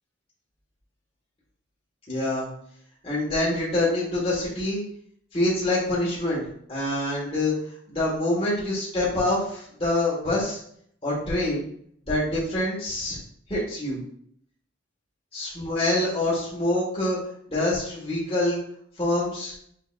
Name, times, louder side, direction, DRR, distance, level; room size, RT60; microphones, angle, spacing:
voice 1, 2.1-2.5 3.0-4.8 5.3-6.4 6.7-7.5 7.9-10.6 11.0-11.6 12.1-13.2 13.5-14.0 15.3-17.2 17.5-18.6 19.0-19.5, left 1 dB, 30° left, -7 dB, 1.5 m, -25 dB
6.4 x 2.8 x 2.4 m, 0.65 s
head